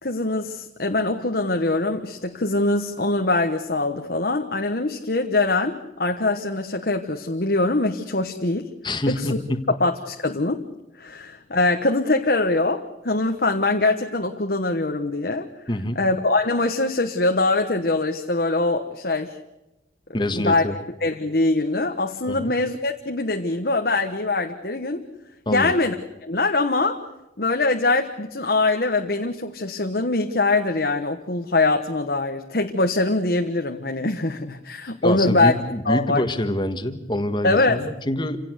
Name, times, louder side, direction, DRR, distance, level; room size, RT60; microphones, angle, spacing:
voice 1, 0.0-8.7 9.1-9.4 9.8-10.6 11.0-15.5 15.9-19.3 20.3-25.1 25.5-26.0 26.2-27.0 27.4-35.5 35.8-36.2 37.4-37.8, left 2 dB, 55° left, 4 dB, 1.3 m, -23 dB
voice 2, 8.8-9.7 15.7-16.0 20.1-20.7 22.3-22.5 25.4-25.7 35.0-38.4, left 1 dB, 25° left, 9 dB, 1.6 m, -25 dB
28.5 x 17.0 x 8.1 m, 0.96 s
head